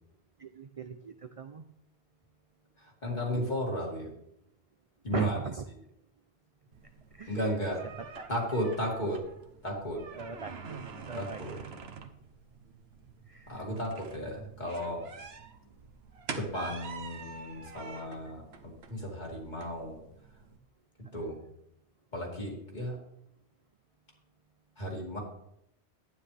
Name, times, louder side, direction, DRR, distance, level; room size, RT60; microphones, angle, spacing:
voice 1, 0.4-1.6 5.1-5.7 7.1-7.4 8.2-8.3 10.1-10.8 11.1-11.7 13.3-13.7 21.0-21.3, right 5 dB, 45° right, 8 dB, 0.5 m, -40 dB
voice 2, 2.8-4.1 5.0-5.4 7.3-7.8 8.3-9.2 9.6-10.0 11.1-11.6 13.5-15.0 16.4-20.0 21.1-21.4 22.1-23.0 24.8-25.2, equal, 40° left, -2 dB, 2.8 m, -34 dB
sound 1, 6.7-20.6, right 5 dB, 65° right, 1.1 m, -46 dB
11.5 x 9.8 x 3.4 m, 0.77 s
omnidirectional pair, 1.2 m